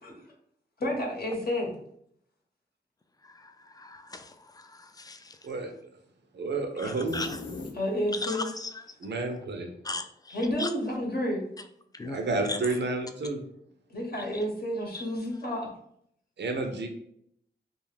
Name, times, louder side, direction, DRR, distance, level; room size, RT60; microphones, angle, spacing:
voice 1, 0.8-1.7 6.8-6.9 7.7-8.5 10.3-11.4 13.9-15.7, left 1 dB, 55° left, -2 dB, 0.9 m, -30 dB
voice 2, 3.3-5.4 6.8-7.4 8.2-8.7 9.8-10.7 11.9-12.2 12.5-12.6 14.9-15.0, left 3 dB, 20° left, 8 dB, 0.3 m, -37 dB
voice 3, 6.3-7.2 9.0-9.7 12.1-13.4 16.4-16.9, right 3 dB, 70° right, 4 dB, 0.5 m, -30 dB
sound 1, 7.1-8.3, left 3 dB, 90° left, 0.5 m, -39 dB
2.4 x 2.4 x 3.2 m, 0.69 s
cardioid pair, 60°, 19 cm